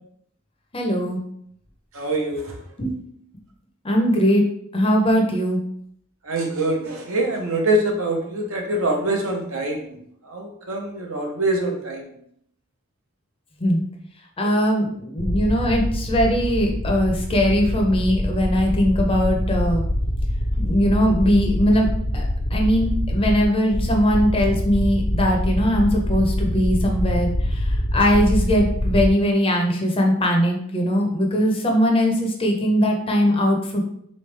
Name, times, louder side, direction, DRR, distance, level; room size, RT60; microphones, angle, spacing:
voice 1, 0.7-1.2 2.8-2.9 3.8-4.4 4.7-5.6 13.6-13.8 14.4-19.9 20.6-21.9 22.1-22.2 22.5-27.6 27.9-33.8, equal, 25° left, 1 dB, 0.6 m, -20 dB
voice 2, 1.9-2.5 6.2-10.0 10.3-12.0, right 1 dB, 75° right, 2 dB, 0.9 m, -24 dB
sound 1, 15.2-29.1, left 1 dB, 60° left, 0.6 m, -24 dB
3.9 x 3.2 x 3.3 m, 0.69 s
head